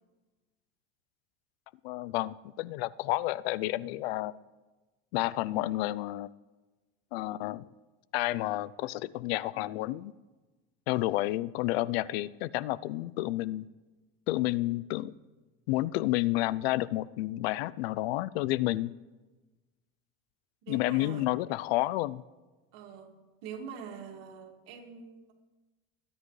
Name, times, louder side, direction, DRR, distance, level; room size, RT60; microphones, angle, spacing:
voice 1, 1.8-4.3 5.1-6.3 7.1-7.7 8.1-10.1 10.9-13.7 14.3-15.1 15.7-18.9 20.7-22.2, left 17 dB, 90° left, 20 dB, 0.5 m, -30 dB
voice 2, 20.6-21.3 22.7-25.3, right 6 dB, 75° right, 3 dB, 2.2 m, -44 dB
23.0 x 9.9 x 3.2 m, 1.2 s
supercardioid pair, 130°, 30 cm